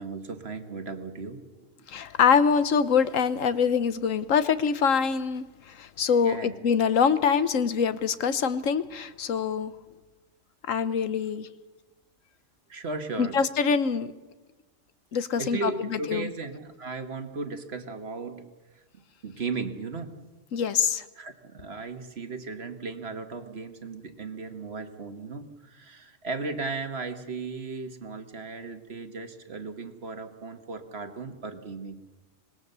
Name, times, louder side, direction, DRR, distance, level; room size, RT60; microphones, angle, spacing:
voice 1, 0.0-1.9 6.2-6.6 12.7-13.4 15.4-18.4 19.2-20.1 21.2-31.9, right 4 dB, 55° right, 7 dB, 1.8 m, -36 dB
voice 2, 1.9-9.7 10.7-11.5 13.2-14.1 15.1-16.3 20.5-21.0, left 6 dB, 80° left, 13 dB, 1.3 m, -24 dB
25.5 x 20.0 x 6.8 m, 1.2 s
omnidirectional pair, 1.3 m